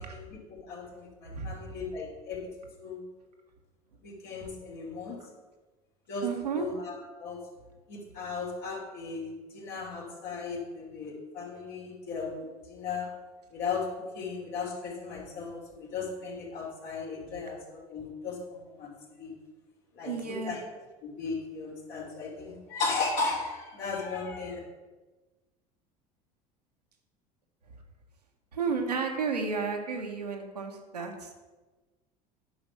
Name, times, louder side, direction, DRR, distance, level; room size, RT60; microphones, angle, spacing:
voice 1, 0.0-2.5 2.8-3.0 4.0-5.2 6.1-6.3 6.5-6.9 7.2-7.4 7.9-13.1 13.5-18.9 19.2-19.3 20.0-20.6 21.0-24.6, left 4 dB, 60° left, -2 dB, 3.0 m, -36 dB
voice 2, 6.2-6.7 20.0-20.7 28.5-31.3, right 5 dB, 85° right, 2 dB, 1.3 m, -32 dB
10.0 x 5.3 x 5.9 m, 1.2 s
figure-of-eight pair, 70°, 20 cm